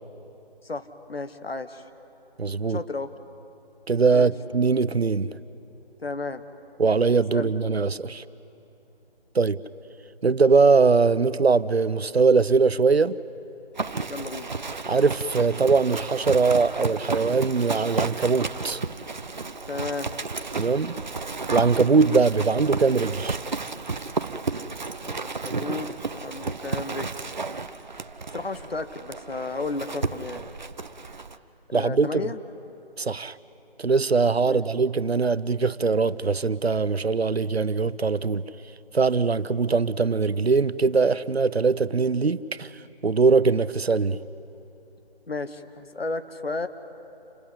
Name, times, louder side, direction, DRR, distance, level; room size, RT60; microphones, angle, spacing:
voice 1, 0.6-1.8 2.7-3.1 4.1-4.3 6.0-6.4 7.3-7.6 13.9-14.5 19.7-20.1 25.0-27.1 28.3-30.4 31.7-32.4 34.4-34.6 45.3-46.7, left 3 dB, 70° left, 1.3 m, -33 dB
voice 2, 2.4-2.8 3.9-5.3 6.8-8.2 9.3-9.6 10.2-13.2 14.9-18.8 20.6-21.0 21.5-23.4 31.7-32.1 33.0-33.4 33.8-38.4 38.9-42.7 43.0-44.2, right 4 dB, 85° right, 0.7 m, -21 dB
Livestock farm animals working animals, 13.8-31.4, right 4 dB, 45° right, 0.7 m, -32 dB
29.0 x 13.0 x 9.6 m
figure-of-eight pair, 155°, 31 cm